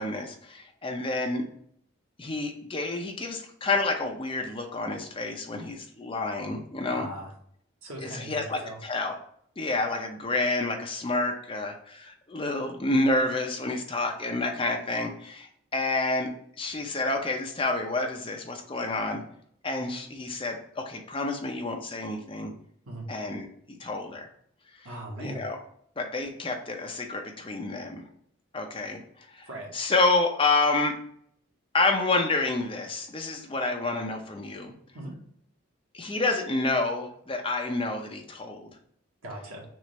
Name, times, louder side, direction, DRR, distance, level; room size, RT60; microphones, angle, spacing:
voice 1, 0.0-1.4 2.2-7.1 8.3-9.1 9.6-16.3 16.6-19.2 19.6-22.5 23.1-24.3 25.2-25.6 26.0-28.0 28.5-29.0 29.3-29.5 29.7-30.9 31.7-34.7 35.9-38.7, left 2 dB, 25° left, 3 dB, 0.6 m, -29 dB
voice 2, 6.9-7.3 7.8-8.8 22.8-23.1 24.8-25.5 29.4-29.7 34.9-35.1 39.2-39.6, right 1 dB, 90° right, -1 dB, 1.5 m, -39 dB
6.2 x 2.5 x 3.2 m, 0.66 s
head